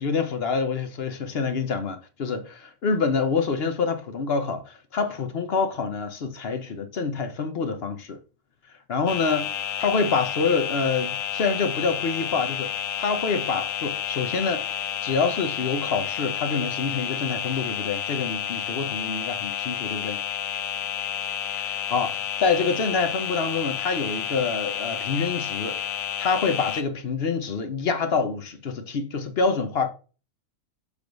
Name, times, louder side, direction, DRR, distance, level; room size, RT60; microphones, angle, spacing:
voice 1, 0.0-8.2 8.9-9.5 9.8-12.7 13.0-14.6 15.0-20.2 21.6-25.8 26.2-29.9, left 5 dB, 50° left, 0.9 m, -26 dB
sound 1, 9.1-26.8, left 9 dB, 70° left, 1.1 m, -30 dB
6.9 x 3.2 x 5.1 m
omnidirectional pair, 1.5 m